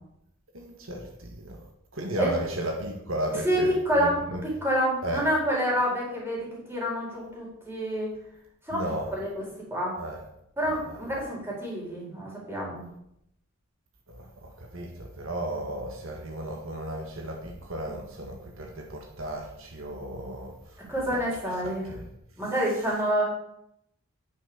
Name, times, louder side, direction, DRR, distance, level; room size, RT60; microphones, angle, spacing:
voice 1, 0.5-1.6 1.9-3.7 4.0-4.4 5.0-5.2 8.7-9.1 10.0-10.2 14.1-14.3 14.7-20.5 21.9-22.0, right 1 dB, 70° right, 2 dB, 1.8 m, -34 dB
voice 2, 3.3-8.1 8.7-10.0 10.6-12.9 20.9-21.9 22.4-23.2, equal, 10° right, -4 dB, 4.4 m, -28 dB
9.7 x 6.4 x 7.0 m, 0.78 s
head